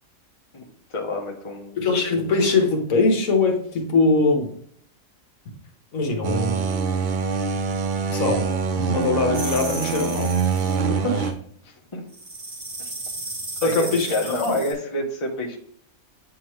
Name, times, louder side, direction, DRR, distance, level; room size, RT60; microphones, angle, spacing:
voice 1, 0.5-1.8 11.6-12.0 13.6-15.6, left 1 dB, 25° left, 0 dB, 1.0 m, -29 dB
voice 2, 1.8-4.5 5.9-6.6 8.1-8.5 8.7-10.3 10.8-11.3 13.6-14.6, left 3 dB, 65° left, 3 dB, 1.5 m, -22 dB
sound 1, 6.2-11.3, right 5 dB, 65° right, 0.5 m, -24 dB
sound 2, 9.3-10.8 12.1-14.7, right 2 dB, 30° right, 1.3 m, -34 dB
8.7 x 3.6 x 3.1 m, 0.63 s
omnidirectional pair, 1.5 m